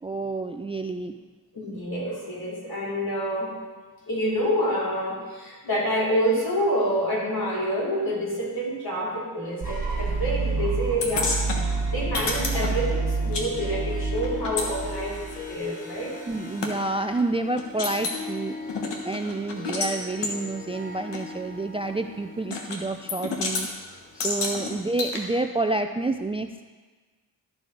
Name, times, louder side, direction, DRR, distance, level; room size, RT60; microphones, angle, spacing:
voice 1, 0.0-1.2 16.3-18.8 19.1-23.9 24.1-26.6, right 2 dB, 15° right, 7 dB, 0.4 m, -29 dB
voice 2, 1.5-3.6 4.1-15.2 15.5-16.1, equal, 60° left, -5 dB, 3.0 m, -27 dB
Harp, 9.4-24.8, left 3 dB, 20° left, 1.4 m, -41 dB
sound 1, 9.6-15.5, right 4 dB, 55° right, 1.3 m, -28 dB
sound 2, 11.0-13.5 13.7-16.7 17.2-17.3 17.6-18.2 18.7-19.9 20.2-20.4 21.1-21.2 22.5-22.8 23.1-23.7 24.2-25.2, left 3 dB, 80° left, 1.3 m, -31 dB
13.0 x 4.9 x 3.9 m, 1.3 s
cardioid pair, 50°, 42 cm